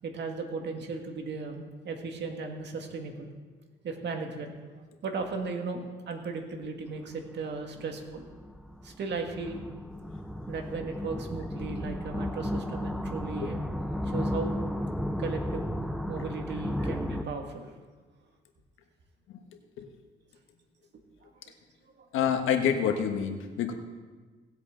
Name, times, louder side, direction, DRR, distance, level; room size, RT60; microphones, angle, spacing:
voice 1, 0.0-3.3 3.8-4.5 5.0-8.3 8.8-9.6 10.5-13.6 14.1-14.5 15.2-15.7 16.1-17.7, right 4 dB, 60° right, 3 dB, 2.0 m, -36 dB
sound 1, 7.0-7.1 7.8-17.2, left 1 dB, ahead, 0.6 m, -34 dB
voice 2, 22.1-23.7, left 8 dB, 85° left, 5 dB, 1.3 m, -27 dB
18.0 x 8.0 x 3.9 m, 1.4 s
cardioid pair, 90°, 20 cm